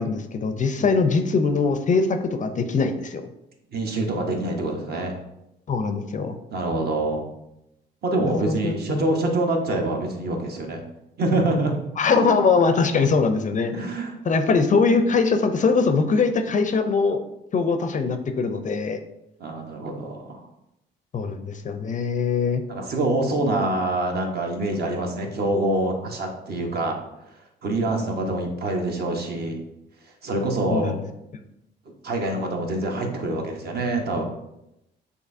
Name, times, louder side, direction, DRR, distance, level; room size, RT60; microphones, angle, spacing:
voice 1, 0.0-3.2 5.7-6.4 8.2-9.1 12.0-13.7 14.2-17.2 17.5-19.0 21.1-22.6 30.7-31.0, left 4 dB, 40° left, 7 dB, 0.4 m, -22 dB
voice 2, 0.8-1.1 3.7-5.2 6.5-7.3 8.0-10.8 11.2-11.7 13.7-14.1 19.4-20.5 22.7-27.0 27.6-29.6 30.2-31.0 32.0-34.2, right 2 dB, 55° right, 2 dB, 0.9 m, -25 dB
6.5 x 2.7 x 2.6 m, 0.86 s
cardioid pair, 90°, 20 cm